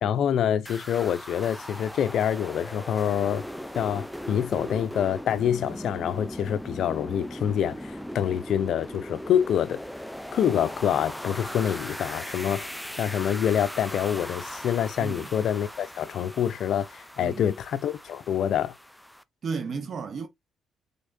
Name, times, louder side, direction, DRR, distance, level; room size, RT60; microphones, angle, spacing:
voice 1, 0.0-3.4 3.7-9.8 10.3-18.7, left 9 dB, 70° left, 0.6 m, -26 dB
sound 1, 0.7-19.2, equal, 5° left, 0.5 m, -39 dB
voice 2, 15.0-15.3 17.2-17.4 19.4-20.3, right 5 dB, 50° right, 1.0 m, -33 dB
5.4 x 3.6 x 2.6 m
cardioid pair, 90°, 0 cm